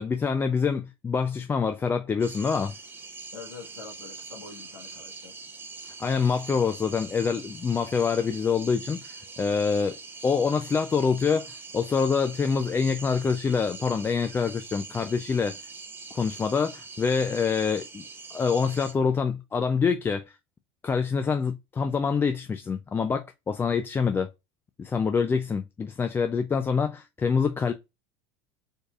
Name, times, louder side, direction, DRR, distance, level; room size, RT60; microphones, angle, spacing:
voice 1, 0.0-2.7 6.0-10.0 10.2-11.5 11.7-15.6 16.1-18.0 18.3-20.2 20.8-24.3 24.8-27.7, left 5 dB, 15° left, 0.3 m, -26 dB
sound 1, 2.2-18.9, right 4 dB, 15° right, 0.7 m, -43 dB
voice 2, 3.3-5.3, left 5 dB, 90° left, 1.3 m, -45 dB
4.2 x 3.3 x 2.4 m
supercardioid pair, 110°, 13 cm